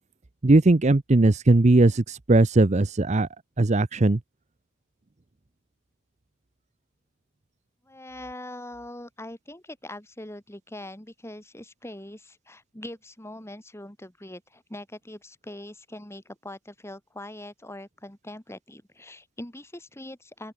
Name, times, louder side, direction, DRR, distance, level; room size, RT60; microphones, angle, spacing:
voice 1, 0.4-3.3 3.6-4.2, right 2 dB, 35° right, 0.7 m, -19 dB
voice 2, 7.8-20.5, left 1 dB, 15° left, 2.5 m, -42 dB
open air
head